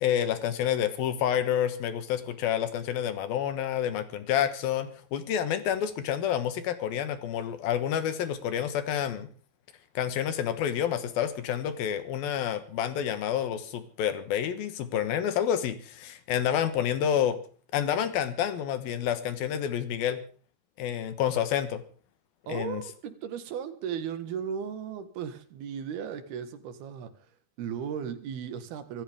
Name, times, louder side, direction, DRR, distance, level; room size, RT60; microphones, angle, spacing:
voice 1, 0.0-9.3 9.9-17.4 17.7-20.2 20.8-21.8 22.5-22.8, left 9 dB, 70° left, 11 dB, 3.0 m, -29 dB
voice 2, 22.5-27.3 27.6-29.0, right 8 dB, 75° right, 9 dB, 3.5 m, -36 dB
25.5 x 14.0 x 3.6 m, 0.42 s
omnidirectional pair, 4.5 m